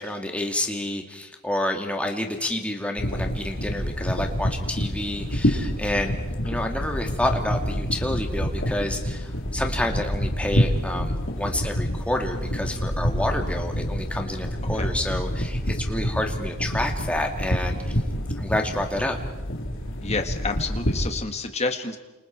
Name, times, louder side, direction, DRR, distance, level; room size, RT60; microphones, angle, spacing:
voice 1, 0.0-6.2 6.4-17.8 18.4-19.2, left 1 dB, 5° left, 2 dB, 2.2 m, -29 dB
sound 1, 3.0-21.1, equal, 55° left, 3.8 m, -27 dB
voice 2, 20.0-22.0, left 3 dB, 30° left, 5 dB, 1.9 m, -29 dB
30.0 x 27.5 x 4.6 m, 1.1 s
head